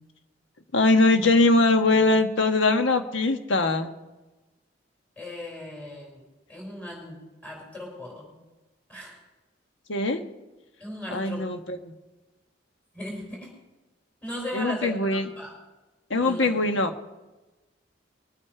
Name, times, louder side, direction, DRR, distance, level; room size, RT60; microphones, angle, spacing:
voice 1, 0.7-3.9 9.9-10.2 11.1-11.9 14.5-15.2 16.1-16.9, left 2 dB, 80° left, 6 dB, 1.2 m, -22 dB
voice 2, 5.2-8.3 8.9-9.2 10.8-11.5 12.9-13.5 14.2-15.5 16.2-16.5, left 1 dB, 10° left, -2 dB, 5.5 m, -38 dB
22.0 x 8.9 x 4.8 m, 1.1 s
head